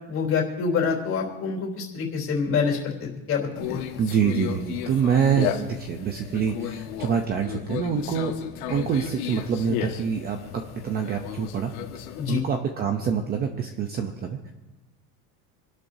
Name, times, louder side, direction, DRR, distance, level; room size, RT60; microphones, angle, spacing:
voice 1, 0.1-4.0 12.2-12.4, left 5 dB, 30° left, -1 dB, 3.4 m, -26 dB
Conversation, 3.6-12.4, left 10 dB, 80° left, 1.7 m, -34 dB
voice 2, 4.0-8.4 8.7-14.5, right 7 dB, 20° right, 5 dB, 0.7 m, -26 dB
27.0 x 12.0 x 2.7 m, 1.1 s
cardioid pair, 165°, 43 cm